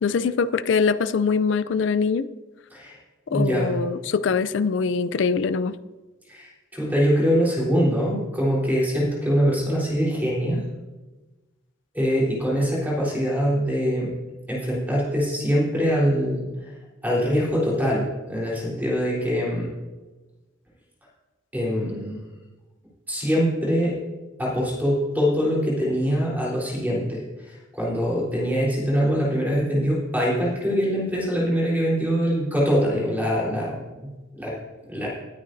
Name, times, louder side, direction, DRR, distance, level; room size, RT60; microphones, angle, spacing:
voice 1, 0.0-2.3 3.3-5.7, left 5 dB, 70° left, 13 dB, 0.4 m, -23 dB
voice 2, 3.3-3.7 6.3-10.6 11.9-14.1 14.5-16.4 17.0-19.7 21.5-22.2 23.1-24.0 24.4-27.2 27.5-33.8 34.4-34.5 34.9-35.1, equal, 10° right, -5 dB, 3.7 m, -23 dB
19.5 x 9.6 x 2.7 m, 1.2 s
head